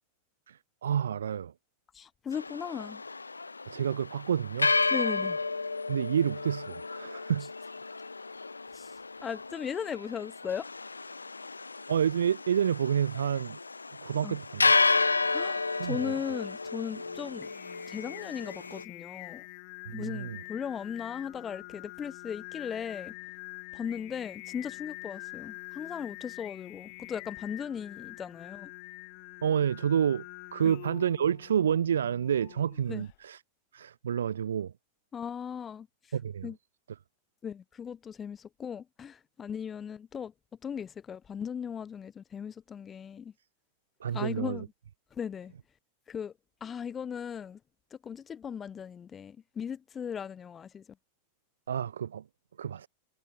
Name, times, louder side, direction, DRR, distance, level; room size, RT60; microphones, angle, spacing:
voice 1, 0.5-1.5 3.7-4.8 5.9-7.5 11.9-13.6 14.0-14.7 15.8-16.1 19.9-20.4 29.4-30.2 30.5-33.4 33.7-34.7 36.1-36.5 44.0-44.7 51.7-52.2 52.6-52.9, right 8 dB, 65° right, 1.1 m, -29 dB
voice 2, 1.9-3.0 4.9-5.4 8.7-10.7 14.2-14.4 15.3-17.5 17.9-19.5 19.9-23.1 23.7-28.7 30.6-30.7 32.9-33.0 35.1-36.1 36.4-36.6 37.4-40.3 40.6-43.3 44.1-44.6 45.1-45.5 46.1-46.3 46.6-47.6 47.9-50.8, left 7 dB, 20° left, 1.0 m, -38 dB
sound 1, 2.3-18.8, left 3 dB, 80° left, 1.1 m, -32 dB
Singing, 16.9-33.2, left 34 dB, 45° left, 1.5 m, -46 dB
figure-of-eight pair, 90°, 0 cm